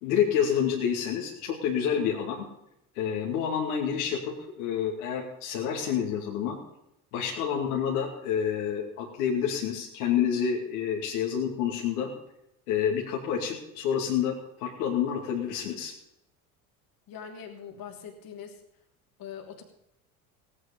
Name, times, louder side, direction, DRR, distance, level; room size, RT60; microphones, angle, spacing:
voice 1, 0.0-2.4 2.9-6.6 7.1-12.1 12.7-15.9, left 8 dB, 70° left, -1 dB, 2.6 m, -28 dB
voice 2, 17.1-18.6 19.2-19.6, left 7 dB, 50° left, 3 dB, 3.0 m, -42 dB
17.0 x 9.8 x 5.4 m, 0.83 s
hypercardioid pair, 65°, 45 cm